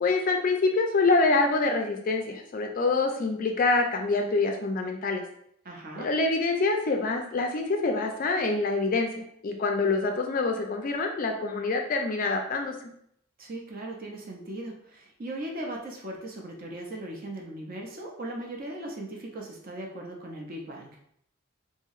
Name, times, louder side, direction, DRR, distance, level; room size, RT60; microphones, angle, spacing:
voice 1, 0.0-5.2 6.0-12.8, left 3 dB, 40° left, 3 dB, 0.3 m, -26 dB
voice 2, 5.6-6.1 13.4-20.9, right 1 dB, 40° right, 0 dB, 0.5 m, -38 dB
2.9 x 2.7 x 2.4 m, 0.70 s
head